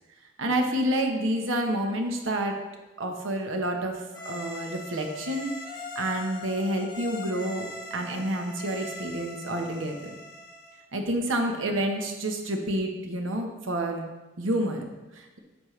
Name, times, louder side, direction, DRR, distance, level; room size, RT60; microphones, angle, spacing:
voice 1, 0.4-2.5 3.0-10.1 10.9-15.4, right 1 dB, 80° right, 3 dB, 1.2 m, -29 dB
sound 1, 4.1-10.8, left 2 dB, 20° left, 1.2 m, -41 dB
9.8 x 7.4 x 3.3 m, 1.1 s
head